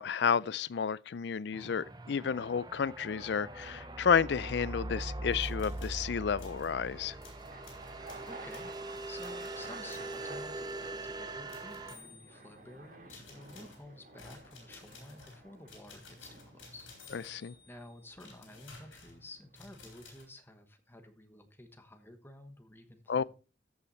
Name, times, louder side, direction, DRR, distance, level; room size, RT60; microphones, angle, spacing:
voice 1, 0.0-7.1 17.1-17.5 23.1-23.2, left 6 dB, 60° left, 0.4 m, -31 dB
sound 1, 1.1-1.6 5.4-20.0, right 2 dB, 45° right, 2.1 m, -52 dB
sound 2, 1.5-12.0, right 2 dB, 20° right, 0.7 m, -42 dB
sound 3, 5.3-6.0 6.4-6.7 7.2-10.2 10.7-10.9 11.5-12.7 13.1-20.2, left 4 dB, 80° left, 4.1 m, -55 dB
voice 2, 8.3-23.2, left 1 dB, 10° left, 1.2 m, -52 dB
14.0 x 5.8 x 4.2 m
head